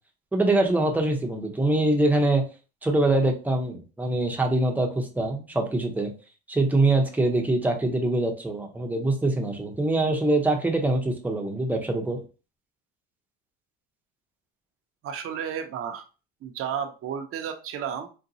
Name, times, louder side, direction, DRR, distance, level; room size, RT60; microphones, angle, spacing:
voice 1, 0.3-2.5 2.8-6.1 6.5-12.2, right 2 dB, 5° right, 2 dB, 0.7 m, -24 dB
voice 2, 15.0-16.0 16.4-18.1, right 8 dB, 50° right, 5 dB, 0.6 m, -32 dB
4.0 x 2.2 x 2.7 m, 0.34 s
cardioid pair, 115°, 29 cm